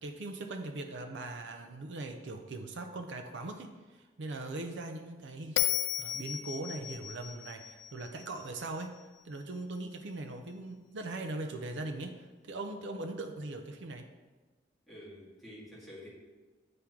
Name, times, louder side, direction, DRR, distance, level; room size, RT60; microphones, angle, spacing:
voice 1, 0.0-5.6 6.0-9.0 9.2-14.1, right 2 dB, 85° right, 5 dB, 0.5 m, -40 dB
Bell, 5.6-8.8, left 12 dB, 70° left, 0.3 m, -35 dB
voice 2, 14.9-16.1, equal, ahead, -8 dB, 1.9 m, -49 dB
8.6 x 3.7 x 4.5 m, 1.2 s
head